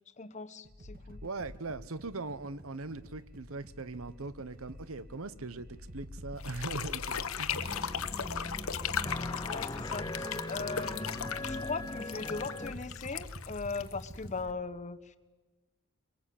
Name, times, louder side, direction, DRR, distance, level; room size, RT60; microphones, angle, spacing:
voice 1, 0.2-1.2 9.4-11.1 11.4-15.2, left 4 dB, 35° left, 12 dB, 1.0 m, -39 dB
sound 1, 0.6-14.5, left 1 dB, 40° right, 2.2 m, -48 dB
voice 2, 1.2-7.7, right 3 dB, 70° right, 16 dB, 1.0 m, -40 dB
sound 2, 6.4-14.4, left 7 dB, 70° left, 1.1 m, -37 dB
sound 3, 7.5-12.7, left 2 dB, 20° left, 0.8 m, -39 dB
23.0 x 23.0 x 8.7 m, 1.2 s
head